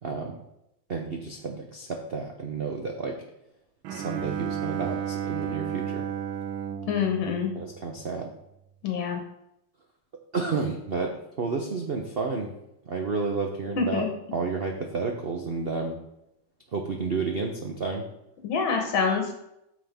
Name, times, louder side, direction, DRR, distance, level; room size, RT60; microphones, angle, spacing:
voice 1, 0.0-0.4 0.9-3.2 3.9-6.0 7.6-8.3 10.3-12.5 12.9-16.0 16.7-18.0, right 4 dB, 60° right, 2 dB, 0.6 m, -31 dB
Bowed string instrument, 3.8-8.2, right 9 dB, 80° right, 1.4 m, -33 dB
voice 2, 6.9-7.5 8.8-9.2 13.8-14.1 18.4-19.3, left 5 dB, 85° left, 2 dB, 1.8 m, -26 dB
9.2 x 6.2 x 3.5 m, 0.84 s
omnidirectional pair, 2.1 m